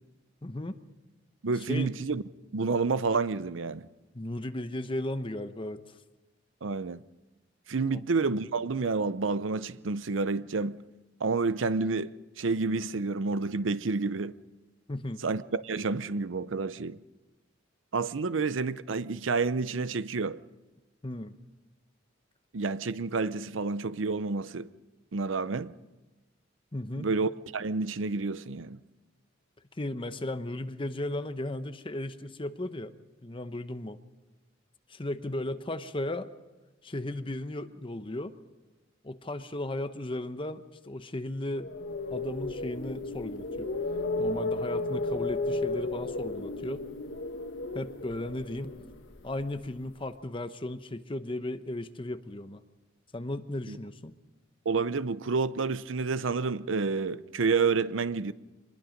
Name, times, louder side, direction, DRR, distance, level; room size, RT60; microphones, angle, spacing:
voice 1, 0.4-0.8 1.7-1.9 4.1-5.9 7.8-8.0 14.9-15.2 21.0-21.3 26.7-27.1 29.8-32.9 33.2-34.0 34.9-36.3 36.8-38.4 39.0-41.7 42.1-43.7 44.2-46.8 47.7-48.8 49.2-52.6 53.1-54.1, left 1 dB, 25° left, 0.9 m, -35 dB
voice 2, 1.4-2.2 2.5-3.9 6.6-7.0 7.7-10.8 11.2-14.4 15.2-17.0 17.9-20.4 22.5-24.7 25.1-25.7 27.0-28.8 53.7-53.8 54.7-58.3, right 4 dB, 90° right, 0.6 m, -29 dB
sound 1, 41.6-49.7, left 2 dB, 70° left, 1.5 m, -34 dB
24.0 x 21.0 x 5.2 m
head